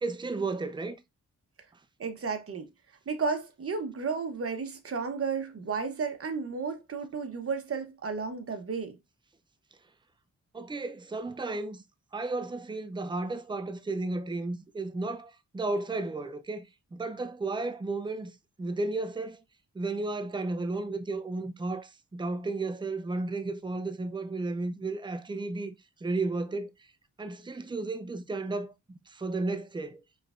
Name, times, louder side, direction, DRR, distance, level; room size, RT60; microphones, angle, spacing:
voice 1, 0.0-1.0 10.5-11.8 12.1-18.3 18.6-19.4 19.7-25.7 26.0-26.7 27.2-30.0, right 3 dB, 15° right, 0.5 m, -33 dB
voice 2, 2.0-2.7 3.1-9.0, right 5 dB, 45° right, 0.9 m, -33 dB
4.8 x 3.3 x 2.4 m
cardioid pair, 75°, 31 cm